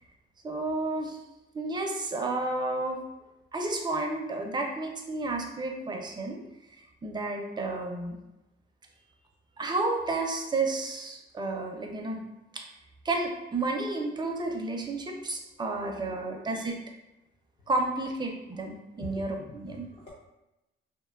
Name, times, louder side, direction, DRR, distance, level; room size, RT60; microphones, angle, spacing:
voice 1, 0.4-1.2 1.5-3.0 3.5-6.4 7.0-8.2 9.6-12.2 12.5-12.6 13.0-16.8 17.7-19.9, right 2 dB, 20° right, 2 dB, 0.4 m, -31 dB
voice 2, 16.0-16.5 19.0-20.1, left 2 dB, 35° left, -5 dB, 0.5 m, -45 dB
2.8 x 2.2 x 2.2 m, 0.95 s
cardioid pair, 90°, 20 cm